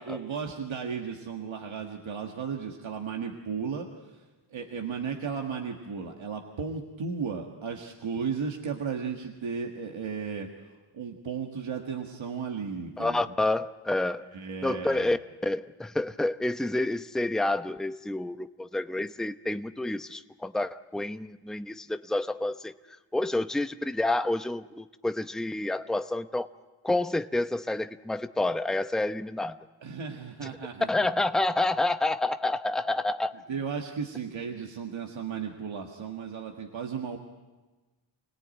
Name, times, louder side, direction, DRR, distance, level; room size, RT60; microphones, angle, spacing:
voice 1, 0.0-4.2 4.5-13.2 14.3-15.1 29.8-31.1 33.5-37.2, right 6 dB, 80° right, 1 dB, 1.8 m, -35 dB
voice 2, 13.0-14.3 14.6-15.2 15.4-22.7 23.1-26.5 26.8-29.6 30.9-33.3, left 2 dB, ahead, 10 dB, 0.8 m, -29 dB
26.5 x 18.0 x 9.1 m, 1.2 s
cardioid pair, 50°, 46 cm